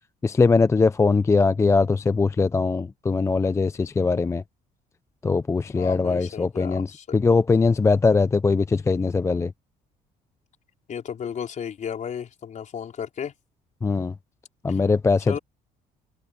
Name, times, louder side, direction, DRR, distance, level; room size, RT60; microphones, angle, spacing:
voice 1, 0.2-4.4 5.2-6.9 7.1-9.5 13.8-14.1 14.6-15.4, left 4 dB, 15° left, 0.4 m, -21 dB
voice 2, 5.8-7.2 10.9-13.3 14.7-14.8 15.3-15.4, left 8 dB, 45° left, 4.6 m, -34 dB
cardioid pair, 110°, 17 cm